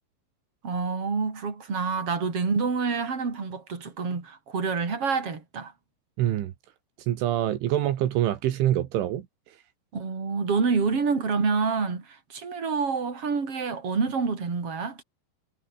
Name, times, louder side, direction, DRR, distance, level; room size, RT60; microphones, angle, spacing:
voice 1, 0.6-5.7 9.9-15.0, right 5 dB, 30° right, 5.3 m, -27 dB
voice 2, 6.2-6.5 7.1-9.3, right 12 dB, 80° right, 4.2 m, -25 dB
omnidirectional pair, 5.6 m